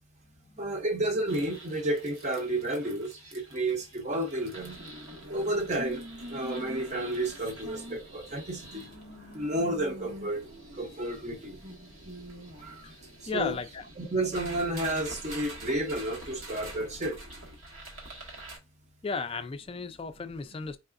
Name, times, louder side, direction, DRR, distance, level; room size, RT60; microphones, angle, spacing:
voice 1, 0.6-4.8 5.3-8.9 9.3-11.6 12.6-12.9 13.3-13.6 14.0-17.3, right 1 dB, 35° right, 0.7 m, -31 dB
sound 1, 1.3-18.6, right 1 dB, 80° right, 1.3 m, -45 dB
voice 2, 13.3-13.8 16.6-16.8 19.0-20.8, left 4 dB, 30° left, 0.4 m, -35 dB
4.7 x 3.3 x 2.5 m
head